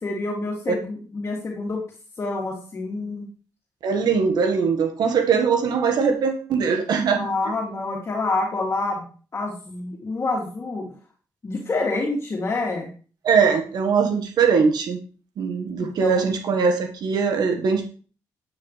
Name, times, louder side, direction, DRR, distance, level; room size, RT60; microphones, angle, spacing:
voice 1, 0.0-1.8 2.2-3.3 7.2-9.1 9.3-10.9 11.4-12.9 15.8-16.2, left 3 dB, 40° left, -2 dB, 2.5 m, -27 dB
voice 2, 3.8-7.3 13.2-15.0 15.4-17.8, right 5 dB, 70° right, 5 dB, 1.5 m, -21 dB
9.5 x 9.4 x 3.3 m, 0.39 s
cardioid pair, 90°, 7 cm